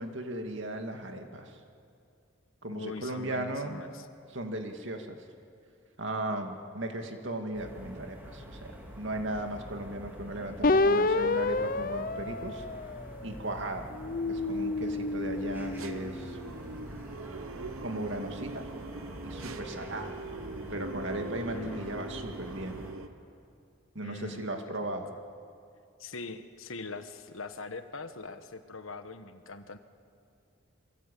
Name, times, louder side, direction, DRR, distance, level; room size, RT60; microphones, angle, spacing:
voice 1, 0.0-1.6 2.6-3.8 4.3-5.2 6.0-12.6 13.2-13.9 14.3-16.4 17.8-18.6 19.2-20.2 20.7-22.8 23.9-25.1, right 1 dB, 65° right, 4 dB, 2.3 m, -37 dB
voice 2, 2.7-4.1 21.5-22.0 24.0-24.5 24.8-25.2 26.0-29.8, left 3 dB, 80° left, 9 dB, 1.4 m, -42 dB
sound 1, 7.5-22.9, equal, 10° right, 3.6 m, -46 dB
sound 2, 10.6-13.3 13.9-16.4, left 2 dB, 40° left, 0.6 m, -29 dB
sound 3, 15.4-23.1, right 3 dB, 85° right, 1.0 m, -42 dB
28.5 x 22.5 x 8.5 m, 2.5 s
head